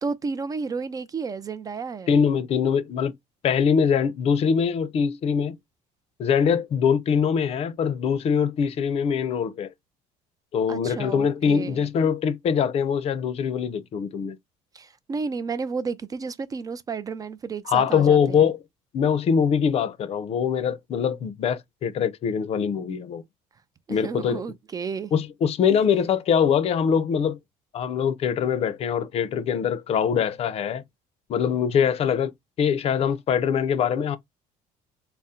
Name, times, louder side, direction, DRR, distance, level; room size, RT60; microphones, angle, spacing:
voice 1, 0.0-2.2 10.7-11.8 14.7-18.5 23.9-25.1, right 5 dB, 25° right, 0.4 m, -32 dB
voice 2, 2.1-3.1 3.4-5.6 6.2-9.7 10.5-14.4 17.7-18.6 18.9-23.2 23.9-24.4 25.1-27.4 27.7-30.8 31.3-32.3 32.6-34.2, left 7 dB, 45° left, 0.5 m, -23 dB
4.2 x 2.0 x 3.6 m
cardioid pair, 135°, 14 cm